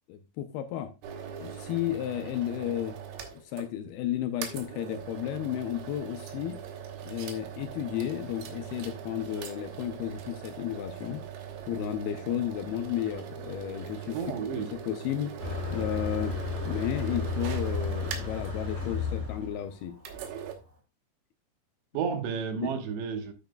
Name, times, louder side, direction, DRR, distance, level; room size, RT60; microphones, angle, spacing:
voice 1, 0.1-0.9 1.4-3.0 3.3-6.6 7.0-11.2 11.7-14.2 14.7-15.3 15.7-16.4 16.6-19.9 22.6-22.7, left 11 dB, 80° left, 2.3 m, -33 dB
sound 1, 1.0-3.7 4.0-4.1 4.4-18.5 20.0-20.6, right 7 dB, 75° right, 3.0 m, -41 dB
voice 2, 14.1-14.7 21.9-23.3, right 6 dB, 90° right, 3.4 m, -31 dB
Motor vehicle (road), 15.4-20.5, left 4 dB, 20° right, 2.5 m, -33 dB
9.1 x 9.0 x 2.3 m
omnidirectional pair, 4.9 m